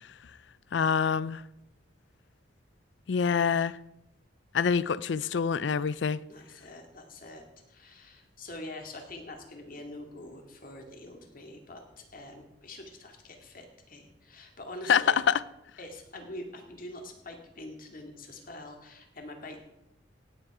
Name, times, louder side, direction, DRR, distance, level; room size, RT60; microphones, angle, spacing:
voice 1, 0.7-1.4 3.1-3.8 4.5-6.2 14.9-15.4, left 6 dB, 65° left, 0.4 m, -26 dB
voice 2, 6.3-15.2 15.8-19.6, left 1 dB, 50° left, 2.2 m, -45 dB
17.0 x 8.2 x 4.9 m
head